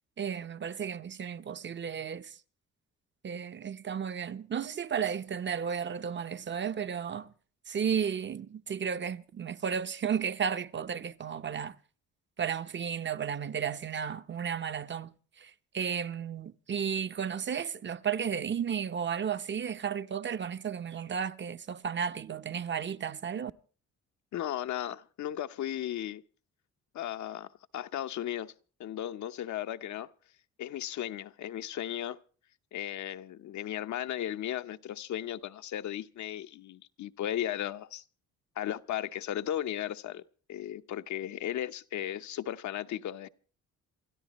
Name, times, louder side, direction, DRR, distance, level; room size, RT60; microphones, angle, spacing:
voice 1, 0.2-2.3 3.2-7.3 7.7-11.7 12.4-15.1 15.4-23.5, right 7 dB, 40° right, 0.8 m, -33 dB
voice 2, 24.3-26.2 26.9-28.5 28.8-30.1 30.6-32.2 32.7-38.0 38.6-40.2 40.5-43.3, left 11 dB, 70° left, 0.9 m, -36 dB
27.5 x 13.0 x 3.1 m
cardioid pair, 90°, 30 cm